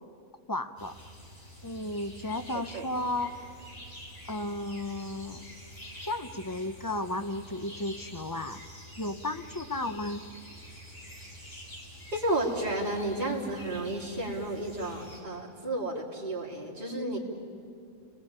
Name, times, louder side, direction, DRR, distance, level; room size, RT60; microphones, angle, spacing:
voice 1, 0.5-0.9 1.6-3.4 4.3-5.5 6.0-8.6 9.0-10.2, left 2 dB, 25° left, 9 dB, 0.5 m, -34 dB
sound 1, 0.8-15.2, equal, 40° left, 4.6 m, -47 dB
voice 2, 12.1-17.2, right 1 dB, 30° right, -4 dB, 3.5 m, -32 dB
30.0 x 19.5 x 8.8 m, 2.4 s
omnidirectional pair, 1.5 m